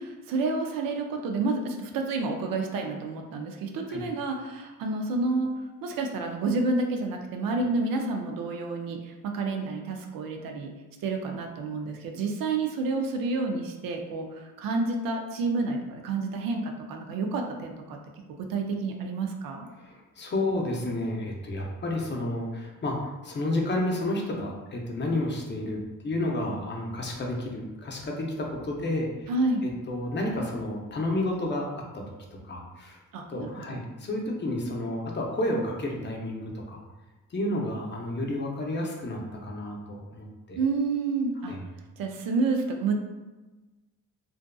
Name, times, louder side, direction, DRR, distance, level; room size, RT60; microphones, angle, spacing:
voice 1, 0.0-5.5 5.8-10.7 11.0-18.0 18.4-19.7 29.3-29.6 33.1-33.8 40.6-41.5 42.0-42.9, right 3 dB, 85° right, 3 dB, 0.5 m, -29 dB
voice 2, 19.8-29.3 29.6-32.1 32.3-33.0 33.3-36.8 37.3-40.6 41.5-41.6, left 1 dB, 35° left, 0 dB, 0.6 m, -31 dB
2.6 x 2.4 x 2.2 m, 1.2 s
cardioid pair, 80°, 33 cm